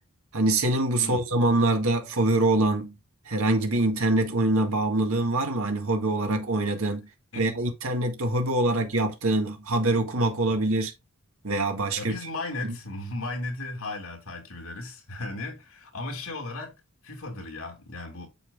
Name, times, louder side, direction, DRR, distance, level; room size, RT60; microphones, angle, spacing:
voice 1, 0.3-2.9 3.3-7.0 7.3-10.9 11.4-12.1 12.6-12.7, right 2 dB, 80° right, 1.8 m, -24 dB
voice 2, 12.0-16.8 17.0-18.3, left 2 dB, 85° left, 2.9 m, -36 dB
8.8 x 6.9 x 2.4 m
head